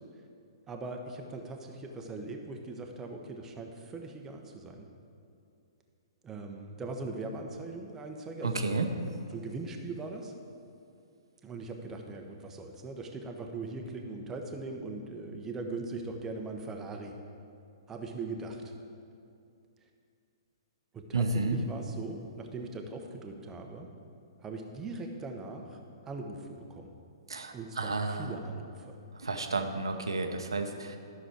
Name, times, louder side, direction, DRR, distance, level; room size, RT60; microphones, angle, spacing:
voice 1, 0.7-4.9 6.2-8.9 9.3-10.3 11.4-17.1 17.9-18.7 20.9-23.9 24.4-25.8 26.1-26.9 27.5-29.0, right 3 dB, 15° right, 2 dB, 0.9 m, -40 dB
voice 2, 8.4-8.9 21.1-21.6 27.3-28.3 29.2-31.0, right 3 dB, 75° right, 6 dB, 0.9 m, -31 dB
12.5 x 6.2 x 4.7 m, 2.5 s
figure-of-eight pair, 115°, 3 cm